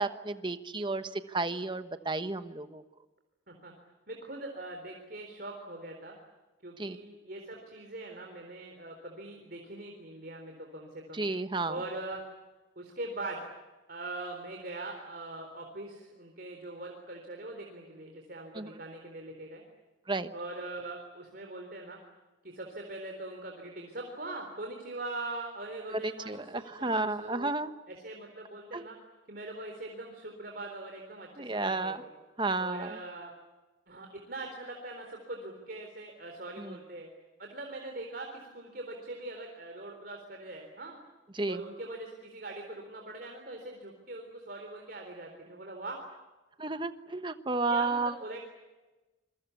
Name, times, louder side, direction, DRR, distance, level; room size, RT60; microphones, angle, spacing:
voice 1, 0.0-2.8 6.8-7.0 11.1-11.8 18.5-18.7 20.1-20.3 25.9-27.7 28.7-28.9 31.4-32.0 32.4-33.0 36.6-36.8 41.3-41.6 46.6-48.1, right 3 dB, 25° right, 10 dB, 1.2 m, -32 dB
voice 2, 4.1-6.2 6.6-11.2 11.7-12.2 12.8-13.5 13.9-19.6 20.3-22.0 22.4-27.5 27.9-29.0 29.3-32.1 32.6-33.3 33.9-37.1 37.4-41.0 41.5-46.0 47.7-48.4, right 2 dB, 55° right, 2 dB, 3.9 m, -42 dB
27.5 x 22.5 x 8.5 m, 1.1 s
head